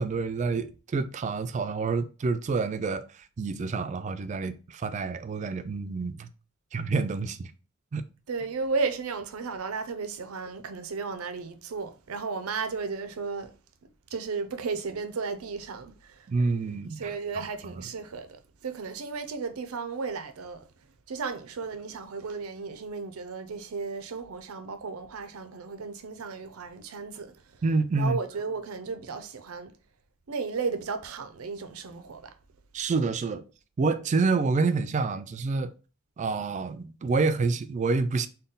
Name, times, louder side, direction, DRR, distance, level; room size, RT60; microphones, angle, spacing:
voice 1, 0.0-3.1 3.4-6.3 6.7-7.5 7.9-8.0 16.3-17.1 17.4-17.5 27.6-28.2 32.7-33.4 33.8-35.7 36.2-38.3, right 4 dB, 35° right, 0.3 m, -28 dB
voice 2, 8.3-13.5 14.1-16.3 16.9-20.7 21.1-27.6 28.0-29.7 30.3-32.3, right 4 dB, 90° right, 0.5 m, -34 dB
3.7 x 2.2 x 3.8 m
head